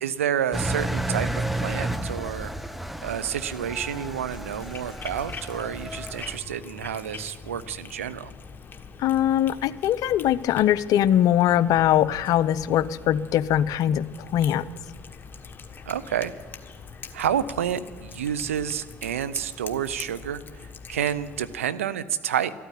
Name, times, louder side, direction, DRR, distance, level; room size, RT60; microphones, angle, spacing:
voice 1, 0.0-2.5 3.0-8.3 15.9-16.3 17.1-20.4 20.9-22.5, right 9 dB, 90° right, 13 dB, 0.6 m, -29 dB
Engine, 0.5-6.4, right 1 dB, ahead, 0.8 m, -31 dB
Cat, 3.8-21.6, left 5 dB, 30° left, 1.4 m, -43 dB
voice 2, 9.0-14.1 14.3-14.7, left 11 dB, 60° left, 16 dB, 0.6 m, -21 dB
13.5 x 9.1 x 10.0 m, 1.4 s
hypercardioid pair, 70°, 7 cm